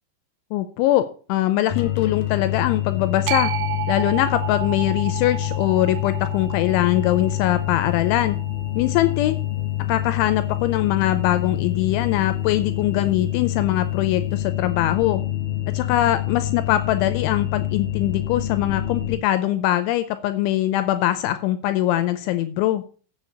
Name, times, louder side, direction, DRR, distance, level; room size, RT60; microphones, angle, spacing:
voice 1, 0.5-3.5 3.9-8.4 8.8-9.4 9.9-15.2 15.7-22.8, left 13 dB, 80° left, 11 dB, 3.0 m, -22 dB
sound 1, 1.7-19.2, left 13 dB, 60° left, 2.9 m, -26 dB
sound 2, 3.3-9.5, right 12 dB, 85° right, 3.4 m, -33 dB
8.2 x 7.1 x 8.2 m, 0.40 s
omnidirectional pair, 5.6 m